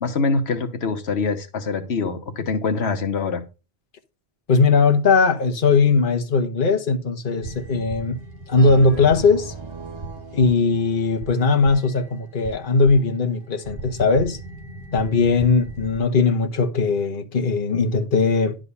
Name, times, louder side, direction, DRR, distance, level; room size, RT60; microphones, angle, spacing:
voice 1, 0.0-3.4, left 4 dB, 85° left, 1.3 m, -24 dB
voice 2, 4.5-8.2 8.5-9.5 10.3-14.4 14.9-18.6, left 4 dB, 55° left, 1.3 m, -19 dB
sound 1, 7.4-16.0, right 2 dB, 65° right, 3.2 m, -39 dB
sound 2, 8.6-11.5, right 5 dB, 35° right, 0.4 m, -37 dB
11.0 x 3.9 x 6.8 m
omnidirectional pair, 1.1 m